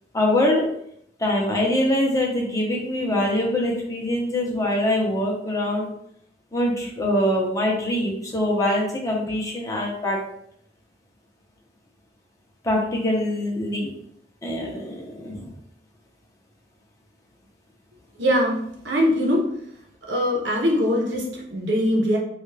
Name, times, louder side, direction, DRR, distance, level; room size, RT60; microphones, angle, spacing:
voice 1, 0.1-0.6 1.2-5.9 6.5-10.2 12.6-13.9 14.4-15.5, left 1 dB, 20° left, -2 dB, 0.7 m, -23 dB
voice 2, 18.2-19.5 20.1-22.2, equal, 80° right, -1 dB, 0.8 m, -22 dB
3.4 x 2.4 x 3.3 m, 0.71 s
head